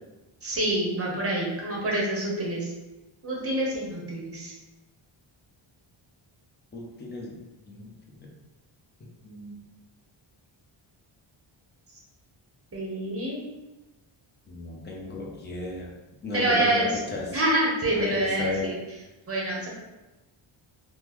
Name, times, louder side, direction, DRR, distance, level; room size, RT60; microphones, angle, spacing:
voice 1, 0.4-2.7 3.2-4.5 12.7-13.4 16.3-16.9 17.3-18.8 19.3-19.7, right 1 dB, 30° right, -3 dB, 0.7 m, -26 dB
voice 2, 6.7-7.3 7.7-7.9 9.2-9.5 14.5-15.9 16.2-17.3 18.0-18.7, left 3 dB, 20° left, -2 dB, 0.5 m, -34 dB
3.6 x 2.1 x 2.9 m, 1.1 s
wide cardioid pair, 150°, 49 cm